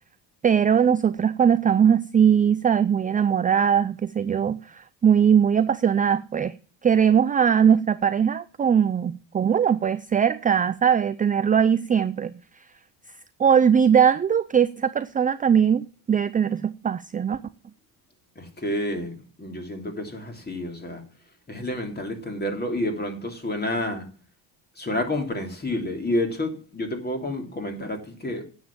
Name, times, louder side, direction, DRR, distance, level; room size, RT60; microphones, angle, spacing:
voice 1, 0.4-6.6 6.8-12.3 13.4-17.4, right 8 dB, 20° right, 0.4 m, -20 dB
voice 2, 18.3-21.0 21.5-24.1 24.8-28.4, left 1 dB, 20° left, 3.2 m, -29 dB
9.5 x 7.3 x 7.2 m
supercardioid pair, 90°, 45 cm